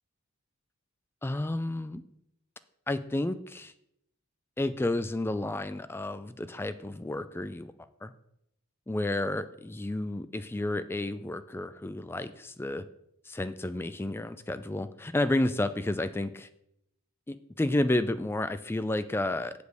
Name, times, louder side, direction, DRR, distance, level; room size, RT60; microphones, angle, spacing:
voice 1, 1.2-2.0 2.9-3.7 4.6-7.7 8.0-8.1 8.9-12.8 13.3-16.5 17.3-19.5, left 1 dB, 10° left, 12 dB, 0.3 m, -31 dB
8.0 x 5.1 x 6.7 m, 0.77 s
head